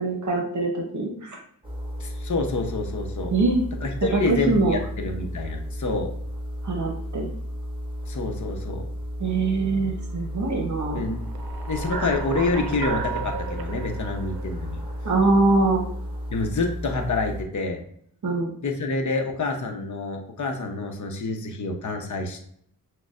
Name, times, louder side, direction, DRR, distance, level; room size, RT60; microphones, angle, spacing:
voice 1, 0.0-1.4 3.3-3.6 4.1-4.8 6.6-7.3 9.2-11.0 15.0-15.8 18.2-18.5, right 3 dB, 50° right, 0 dB, 0.9 m, -23 dB
sound 1, 1.6-17.4, equal, 15° right, 1.2 m, -33 dB
voice 2, 2.0-3.3 3.8-6.1 8.1-8.8 10.9-11.2 11.7-14.8 16.3-17.8 18.6-22.5, left 3 dB, 50° left, 3 dB, 0.8 m, -27 dB
sound 2, 11.2-15.5, right 5 dB, 70° right, 0.6 m, -34 dB
6.1 x 2.3 x 2.4 m, 0.64 s
cardioid pair, 60°, 38 cm